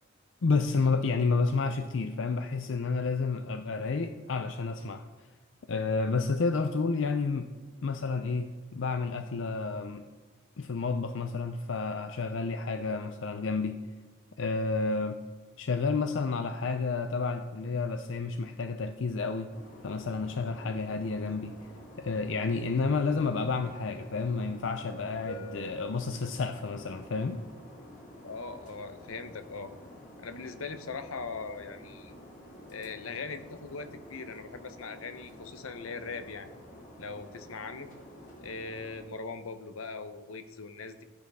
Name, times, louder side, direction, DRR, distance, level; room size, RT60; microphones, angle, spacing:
voice 1, 0.4-5.0 5.7-7.5 7.8-10.1 10.6-13.8 14.4-15.2 15.6-19.5 19.8-21.6 22.0-27.4, left 4 dB, 65° left, 8 dB, 0.5 m, -30 dB
sound 1, 19.5-39.0, equal, 40° left, 1.5 m, -49 dB
voice 2, 28.2-29.7 30.2-32.1 32.7-36.5 37.0-37.9 38.4-41.0, left 4 dB, 85° left, 9 dB, 0.8 m, -40 dB
14.5 x 9.0 x 3.5 m, 1.4 s
head